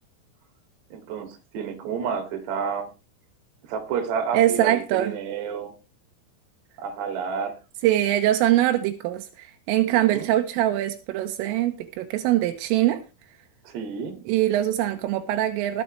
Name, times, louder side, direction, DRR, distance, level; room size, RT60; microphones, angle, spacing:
voice 1, 0.9-2.9 3.7-5.7 6.8-7.6 9.9-10.3 13.7-14.1, right 6 dB, 60° right, 4.2 m, -30 dB
voice 2, 4.3-5.2 7.8-13.0 14.3-15.8, right 13 dB, 85° right, 3.6 m, -23 dB
20.5 x 8.3 x 3.2 m
omnidirectional pair, 5.7 m